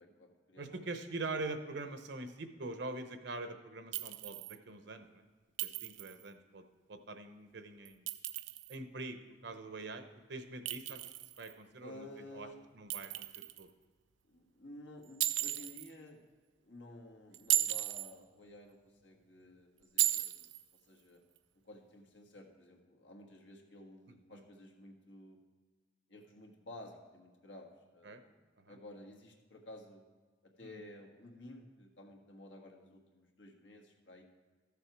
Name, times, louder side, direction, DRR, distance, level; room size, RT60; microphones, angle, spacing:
voice 1, 0.0-0.8 1.1-1.2 11.8-12.6 14.3-16.2 16.6-20.5 20.8-21.2 21.6-25.4 26.1-28.4 28.7-30.0 30.4-34.2, left 1 dB, 80° left, 2 dB, 1.6 m, -53 dB
voice 2, 0.6-5.2 5.6-6.6 6.9-8.1 8.7-12.5 12.7-13.7 28.0-28.2 28.6-28.8 30.6-30.8, right 3 dB, 65° right, 8 dB, 0.9 m, -44 dB
Chink clink, 3.9-4.6 5.6-6.2 7.8-8.7 10.7-11.5 12.9-13.6 15.2-15.9 17.3-18.1 20.0-20.6, right 13 dB, 90° right, 0.5 m, -35 dB
14.0 x 7.0 x 4.6 m, 1.4 s
head